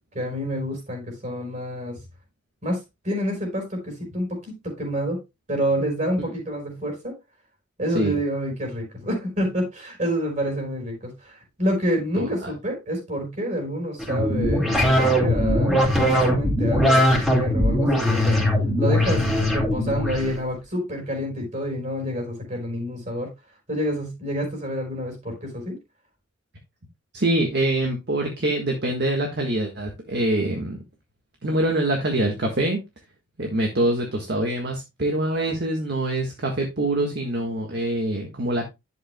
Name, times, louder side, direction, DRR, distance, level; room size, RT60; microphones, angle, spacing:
voice 1, 0.1-2.0 2.6-2.8 3.0-5.2 5.5-7.1 7.8-18.4 18.8-23.3 23.7-25.8, equal, 40° right, 4.7 m, -28 dB
voice 2, 12.1-12.5 27.1-30.8 31.4-32.8 33.4-38.7, right 1 dB, 55° right, 1.5 m, -24 dB
sound 1, 14.0-20.3, equal, ahead, 2.7 m, -20 dB
11.0 x 7.8 x 2.2 m
head